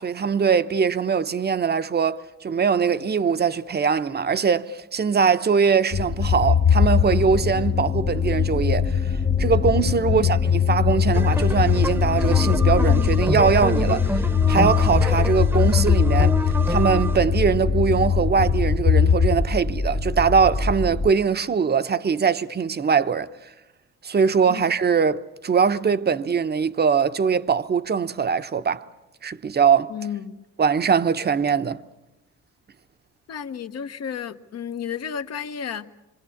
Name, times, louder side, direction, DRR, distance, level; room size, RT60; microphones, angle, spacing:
voice 1, 0.0-9.0 9.4-16.4 16.7-23.3 24.0-28.9 29.2-29.9 30.6-31.8, right 6 dB, 35° right, 0.9 m, -22 dB
sound 1, 5.9-21.1, left 7 dB, 25° left, 0.8 m, -21 dB
voice 2, 10.0-10.4 24.5-24.6 29.9-30.4 33.3-35.9, left 8 dB, 55° left, 1.1 m, -32 dB
sound 2, 11.1-17.2, right 1 dB, 5° right, 1.0 m, -28 dB
26.5 x 24.0 x 7.2 m
cardioid pair, 90°, 30 cm